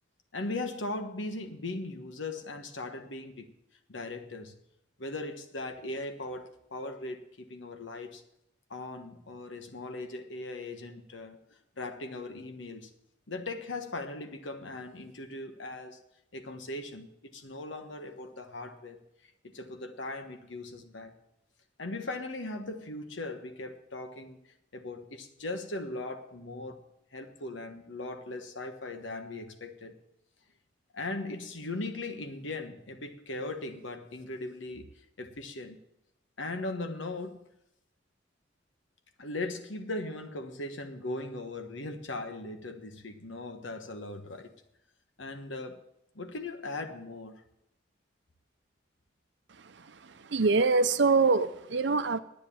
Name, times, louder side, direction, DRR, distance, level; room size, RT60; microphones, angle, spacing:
voice 1, 0.3-3.5 3.9-4.6 5.0-8.2 8.7-11.4 11.8-12.9 13.3-16.0 16.3-19.0 19.5-21.1 21.8-24.4 24.7-26.8 27.1-29.9 30.9-34.9 35.2-35.8 36.4-37.4 39.2-44.5 45.2-45.8 46.1-47.3, left 2 dB, 85° left, 1.3 m, -39 dB
voice 2, 50.3-52.2, right 4 dB, 65° right, 0.7 m, -24 dB
10.0 x 9.1 x 7.2 m
head